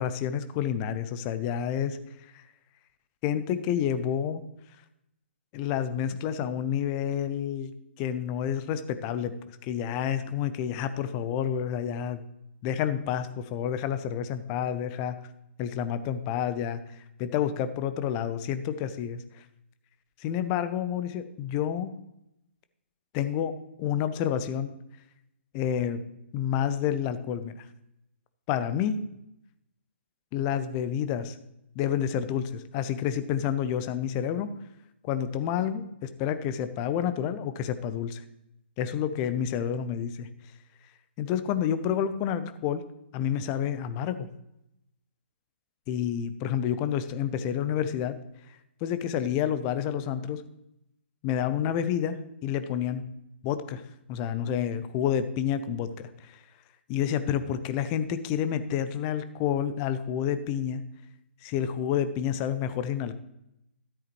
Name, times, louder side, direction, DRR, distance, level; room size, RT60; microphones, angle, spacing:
voice 1, 0.0-2.0 3.2-4.4 5.5-12.2 12.6-15.2 15.6-16.8 17.2-19.2 20.2-21.9 23.1-24.7 25.5-26.0 26.3-27.7 28.5-29.0 30.3-31.4 31.7-34.5 35.0-38.2 38.8-40.3 41.2-42.8 43.1-44.3 45.9-48.2 48.5-50.4 51.2-52.2 52.4-53.0 53.4-53.8 54.1-56.4 56.9-60.8 61.4-63.2, left 9 dB, 25° left, 11 dB, 0.7 m, -29 dB
13.0 x 8.3 x 3.2 m, 0.83 s
figure-of-eight pair, 130°, 7 cm